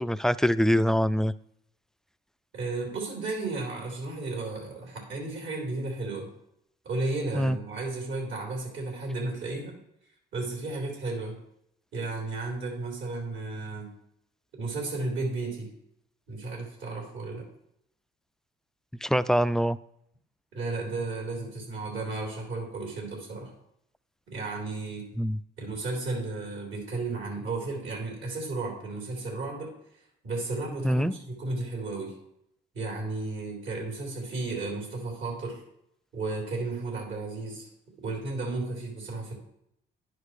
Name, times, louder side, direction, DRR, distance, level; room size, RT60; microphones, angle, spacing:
voice 1, 0.0-1.3 7.3-7.6 19.0-19.8 25.2-25.4 30.8-31.1, equal, 5° left, 14 dB, 0.3 m, -24 dB
voice 2, 2.5-6.3 6.8-9.8 10.3-11.4 11.9-13.9 14.5-15.7 16.3-17.4 20.5-23.5 24.3-25.0 25.6-29.7 30.2-31.1 31.4-32.1 32.7-35.6 36.1-37.7 38.0-39.3, right 3 dB, 75° right, -1 dB, 4.1 m, -33 dB
10.5 x 10.5 x 3.2 m, 0.74 s
cardioid pair, 90°, 20 cm